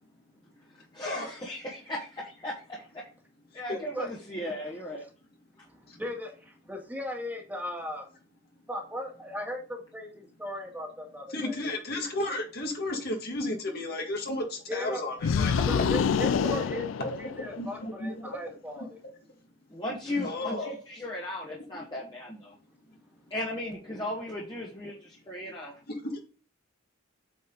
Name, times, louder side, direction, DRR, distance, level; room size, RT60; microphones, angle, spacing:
voice 1, 0.9-3.1 3.5-5.0 19.7-22.5 23.3-25.7, left 1 dB, 25° left, 1.6 m, -36 dB
voice 2, 5.7-8.1 8.7-11.6 14.7-15.0 15.7-19.0, left 1 dB, 10° right, 1.9 m, -37 dB
voice 3, 11.3-15.8 16.3-18.4 18.8-18.9 20.2-20.7 25.9-26.2, left 2 dB, 55° left, 1.9 m, -34 dB
sound 1, 15.2-17.7, left 6 dB, 85° left, 0.4 m, -27 dB
8.4 x 4.4 x 3.8 m
head